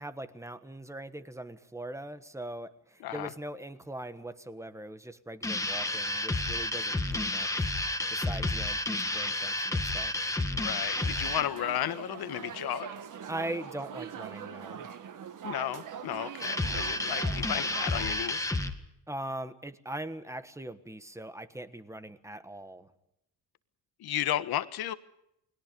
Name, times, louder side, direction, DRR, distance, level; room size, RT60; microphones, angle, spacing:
voice 1, 0.0-10.1 13.3-14.9 19.1-22.9, right 1 dB, 5° right, 11 dB, 1.4 m, -41 dB
sound 1, 5.4-11.5 16.4-18.7, left 2 dB, 10° left, 1.8 m, -31 dB
voice 2, 10.6-12.9 15.4-18.5 24.0-24.9, left 12 dB, 70° left, 12 dB, 1.5 m, -33 dB
sound 2, 11.0-18.1, right 8 dB, 55° right, 1.9 m, -42 dB
29.5 x 21.5 x 5.4 m, 0.81 s
cardioid pair, 145°, 38 cm